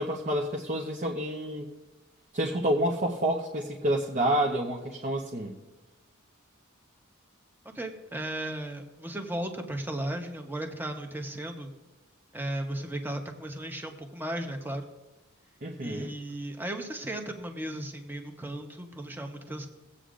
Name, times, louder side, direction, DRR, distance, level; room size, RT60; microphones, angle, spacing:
voice 1, 0.0-1.7 2.3-5.5 15.6-16.1, right 1 dB, 40° right, -1 dB, 0.9 m, -28 dB
voice 2, 7.7-11.7 12.3-14.8 15.8-19.7, right 1 dB, 10° right, 4 dB, 1.0 m, -35 dB
21.5 x 8.1 x 2.5 m, 1.1 s
head